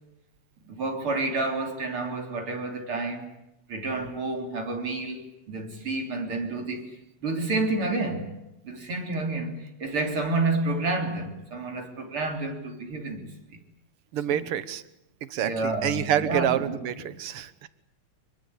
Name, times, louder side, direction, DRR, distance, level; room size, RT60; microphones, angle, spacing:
voice 1, 0.6-3.3 3.7-6.9 7.2-8.4 8.6-13.6 14.3-14.5 15.4-17.2, right 2 dB, 45° right, 4.0 m, -30 dB
voice 2, 14.1-14.8 15.3-17.7, right 10 dB, 60° right, 1.7 m, -27 dB
25.5 x 23.5 x 8.7 m
omnidirectional pair, 3.5 m